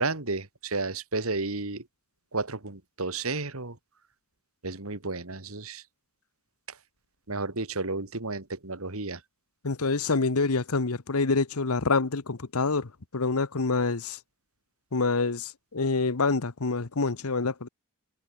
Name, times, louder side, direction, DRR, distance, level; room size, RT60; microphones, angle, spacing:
voice 1, 0.0-1.9 2.3-3.8 4.6-5.8 6.7-6.8 7.3-9.2, right 3 dB, 70° right, 2.5 m, -32 dB
voice 2, 9.6-14.2 14.9-17.7, left 3 dB, 85° left, 1.1 m, -27 dB
head